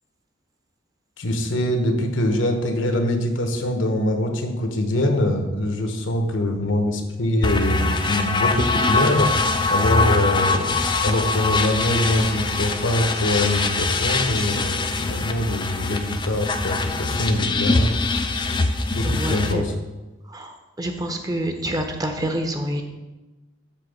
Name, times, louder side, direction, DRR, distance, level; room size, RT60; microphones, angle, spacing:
voice 1, 1.2-9.4 9.7-17.9 18.9-19.7, left 1 dB, 75° left, 5 dB, 1.0 m, -23 dB
sound 1, 7.4-19.5, left 3 dB, 25° left, 0.4 m, -23 dB
voice 2, 19.0-19.6 20.3-22.8, right 1 dB, 20° right, 5 dB, 0.6 m, -27 dB
7.6 x 3.8 x 6.5 m, 1.1 s
head